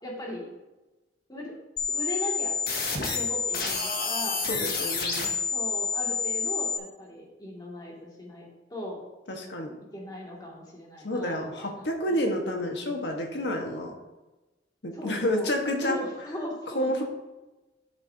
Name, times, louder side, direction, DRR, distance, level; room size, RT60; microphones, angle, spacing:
voice 1, 0.0-0.5 1.3-1.5 1.9-2.6 3.0-4.4 5.5-9.0 9.9-12.2 14.9-15.5 15.8-17.0, left 1 dB, 25° left, -3 dB, 2.3 m, -38 dB
sound 1, 1.8-6.8, left 5 dB, 55° left, 1.5 m, -28 dB
voice 2, 4.5-5.3 9.3-9.7 11.0-13.9 14.8-16.0 16.7-17.0, left 1 dB, 75° left, 2 dB, 1.5 m, -29 dB
12.5 x 6.9 x 2.8 m, 1.1 s
head